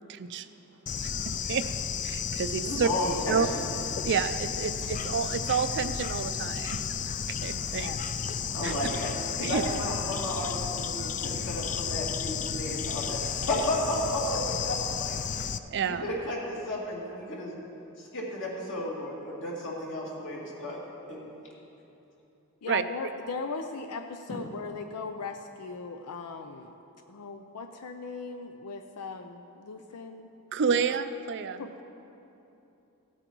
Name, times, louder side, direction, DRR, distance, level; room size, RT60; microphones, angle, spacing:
voice 1, 0.1-0.5 1.0-1.6 2.0-2.9 3.3-3.5 4.0-6.8 7.4-7.9 8.6-8.7 9.4-9.6 15.7-16.0 22.7-22.8 30.5-31.7, right 6 dB, 55° right, 11 dB, 0.4 m, -29 dB
Bird / Insect, 0.9-15.6, left 7 dB, 35° left, 0.4 m, -33 dB
voice 2, 2.6-3.6 4.9-5.1 8.5-9.1 9.4-15.2 15.8-17.5 18.0-20.8 21.1-21.3, left 1 dB, 60° left, -4 dB, 2.5 m, -33 dB
voice 3, 22.6-26.7 27.1-30.3 30.7-30.8 31.6-31.7, left 4 dB, 90° left, 6 dB, 0.6 m, -38 dB
16.0 x 8.9 x 4.6 m, 3.0 s
head